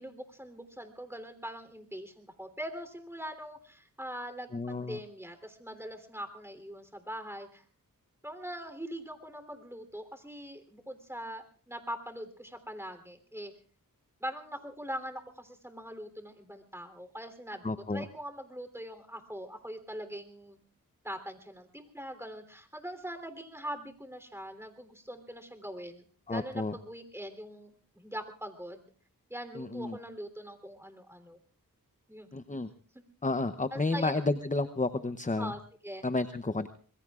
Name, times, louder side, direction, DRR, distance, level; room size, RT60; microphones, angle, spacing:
voice 1, 0.0-7.6 8.2-13.5 14.2-17.6 17.9-20.6 21.0-28.9 29.3-31.4 32.1-32.3 32.9-33.0 33.7-34.1 35.4-36.1, equal, 5° right, 7 dB, 3.4 m, -42 dB
voice 2, 4.5-5.0 17.6-18.0 26.3-26.7 29.6-30.0 32.3-32.7 33.2-35.5 36.0-36.7, left 3 dB, 20° left, 9 dB, 0.8 m, -31 dB
26.0 x 21.5 x 2.5 m, 0.44 s
cardioid pair, 45°, 35 cm